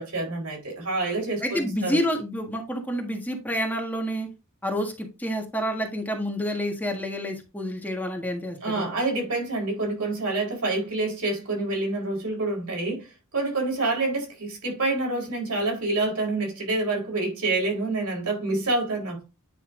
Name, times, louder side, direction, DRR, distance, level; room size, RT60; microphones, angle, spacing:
voice 1, 0.0-2.0 8.6-13.1 13.3-19.2, right 2 dB, 80° right, 4.1 m, -27 dB
voice 2, 1.4-4.3 4.6-8.8, equal, 10° left, 1.4 m, -29 dB
9.5 x 5.4 x 2.5 m
head